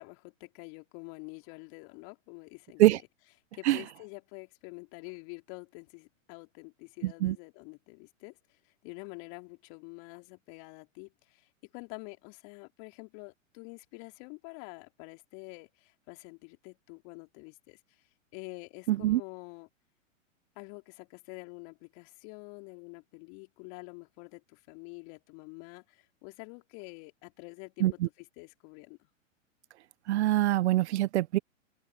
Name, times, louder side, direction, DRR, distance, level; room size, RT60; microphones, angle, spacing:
voice 1, 0.0-3.0 3.5-18.0 18.3-19.7 20.6-29.1, left 33 dB, 45° left, 3.9 m, -47 dB
voice 2, 7.0-7.4 18.9-19.2 27.8-28.1 30.1-31.4, right 15 dB, 55° right, 1.1 m, -24 dB
open air
hypercardioid pair, 110°, 40 cm